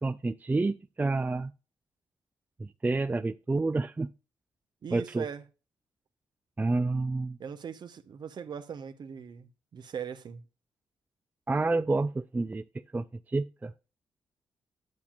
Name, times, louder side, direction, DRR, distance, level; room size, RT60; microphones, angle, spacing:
voice 1, 0.0-1.5 2.6-4.1 4.9-5.3 6.6-7.4 11.5-12.6 12.9-13.7, right 3 dB, 20° right, 0.4 m, -29 dB
voice 2, 4.8-5.5 7.4-10.5, right 7 dB, 55° right, 0.9 m, -40 dB
9.7 x 7.1 x 2.4 m
supercardioid pair, 55°, 9 cm